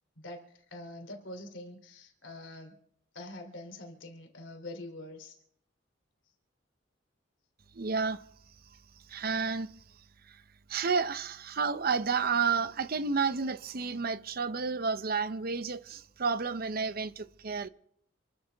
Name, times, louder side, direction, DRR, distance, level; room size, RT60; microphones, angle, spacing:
voice 1, 0.2-2.8 3.1-5.4, left 1 dB, 80° left, 3.0 m, -45 dB
voice 2, 7.7-8.2 9.1-9.7 10.3-10.4 10.7-17.7, right 5 dB, 50° right, 0.7 m, -31 dB
27.5 x 13.0 x 3.5 m
head